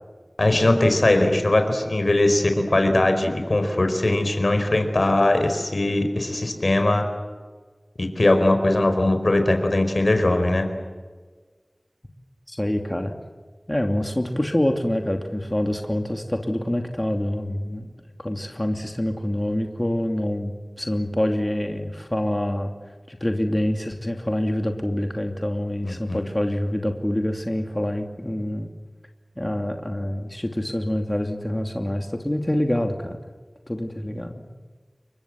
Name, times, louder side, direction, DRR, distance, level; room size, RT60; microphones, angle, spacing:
voice 1, 0.4-7.0 8.0-10.7 25.8-26.2, left 1 dB, 75° left, 7 dB, 4.5 m, -20 dB
voice 2, 12.5-13.1 13.7-17.9 18.2-22.7 23.1-28.7 29.4-33.2 33.7-34.3, left 1 dB, 25° left, 4 dB, 2.7 m, -26 dB
29.0 x 23.5 x 7.7 m, 1.4 s
wide cardioid pair, 45°, 0 cm